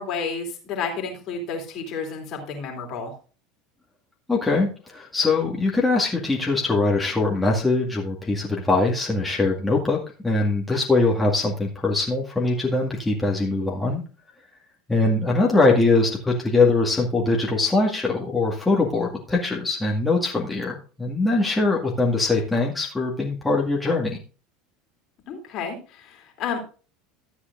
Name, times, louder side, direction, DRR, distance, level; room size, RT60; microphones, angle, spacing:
voice 1, 0.0-3.1 15.0-15.3 25.3-26.6, left 5 dB, 50° left, 2 dB, 2.9 m, -31 dB
voice 2, 4.3-14.0 14.9-24.2, left 3 dB, 10° left, -2 dB, 1.9 m, -22 dB
13.0 x 8.5 x 2.6 m, 0.36 s
hypercardioid pair, 75°, 0 cm